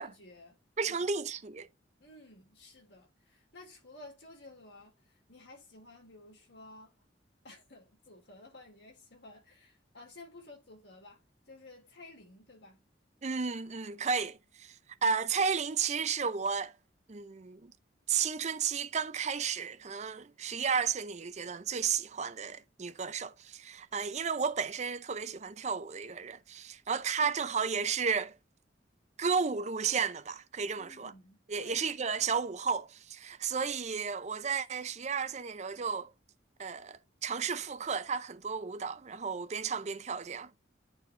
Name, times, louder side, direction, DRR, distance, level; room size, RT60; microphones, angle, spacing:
voice 1, 0.0-1.1 2.0-4.9 5.3-6.9 7.4-11.2 11.5-12.8 30.8-31.9, left 2 dB, 70° left, 4.3 m, -53 dB
voice 2, 0.8-1.7 13.2-14.8 15.0-16.7 17.1-17.7 18.1-28.3 29.2-31.1 31.5-36.1 36.6-40.5, right 6 dB, 40° right, 0.5 m, -33 dB
10.5 x 4.1 x 3.3 m
head